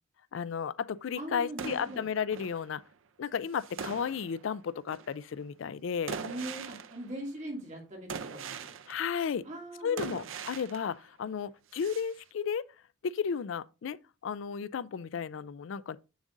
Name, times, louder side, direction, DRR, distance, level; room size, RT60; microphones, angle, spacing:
voice 1, 0.3-2.8 3.2-6.2 8.9-9.4 9.8-12.6 13.0-14.0 14.2-16.0, left 7 dB, 70° left, 0.4 m, -33 dB
voice 2, 1.2-2.0 6.2-8.7 9.4-10.2, right 1 dB, 35° right, 2.4 m, -41 dB
sound 1, 1.6-2.9 3.5-4.5 4.9-5.2 6.1-7.3 8.1-9.2 10.0-11.0 11.7-12.1, right 6 dB, 80° right, 0.6 m, -42 dB
7.3 x 7.2 x 2.6 m
head